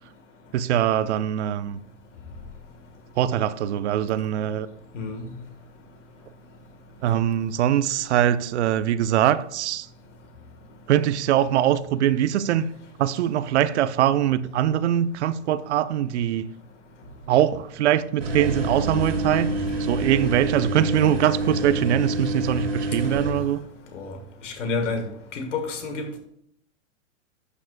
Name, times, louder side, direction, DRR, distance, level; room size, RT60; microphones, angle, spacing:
voice 1, 0.5-1.8 3.2-4.7 7.0-9.9 10.9-12.7 13.0-16.5 17.3-19.5 19.8-23.6, right 11 dB, 65° right, 0.6 m, -22 dB
voice 2, 4.9-5.3 20.6-21.2 23.9-24.2 24.4-25.0 25.3-26.2, left 4 dB, 75° left, 2.1 m, -30 dB
sound 1, 18.2-23.3, right 1 dB, 85° right, 3.0 m, -27 dB
11.0 x 7.1 x 2.5 m
hypercardioid pair, 115°, 36 cm